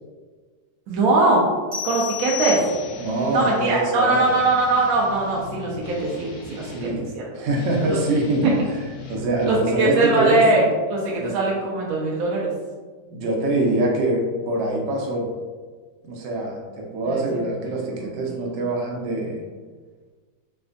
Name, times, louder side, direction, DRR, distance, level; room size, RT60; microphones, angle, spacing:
voice 1, 0.9-1.4 1.8-2.6 3.3-6.7 7.1-7.2 7.8-8.0 9.5-12.5 17.1-17.2 18.3-18.6, right 2 dB, 70° right, -4 dB, 0.9 m, -21 dB
sound 1, 1.7-3.2, left 9 dB, 35° right, 0.6 m, -30 dB
Guitar, 2.4-3.7 4.1-7.0 7.5-9.7, left 3 dB, 65° left, 0.9 m, -40 dB
voice 2, 3.0-4.3 6.6-8.6 9.1-10.5 11.2-11.4 13.1-15.3 16.0-19.4, right 2 dB, 90° right, 0 dB, 1.3 m, -24 dB
3.2 x 2.1 x 2.4 m, 1.4 s
omnidirectional pair, 1.9 m